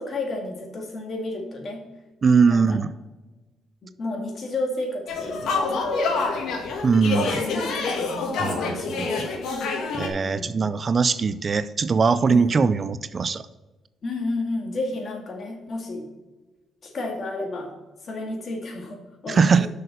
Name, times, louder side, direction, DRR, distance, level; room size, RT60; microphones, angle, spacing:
voice 1, 0.0-1.8 2.5-2.8 4.0-6.6 7.2-9.3 10.2-10.5 12.3-12.6 14.0-16.0 16.8-17.7 18.0-19.7, left 2 dB, 50° left, 3 dB, 2.3 m, -32 dB
voice 2, 2.2-2.9 6.8-7.4 8.4-9.3 9.9-13.5 19.3-19.7, right 5 dB, 40° right, 14 dB, 0.5 m, -21 dB
sound 1, 5.1-10.1, left 3 dB, 75° left, 1.7 m, -27 dB
6.5 x 6.4 x 6.7 m, 1.1 s
cardioid pair, 90°, 0 cm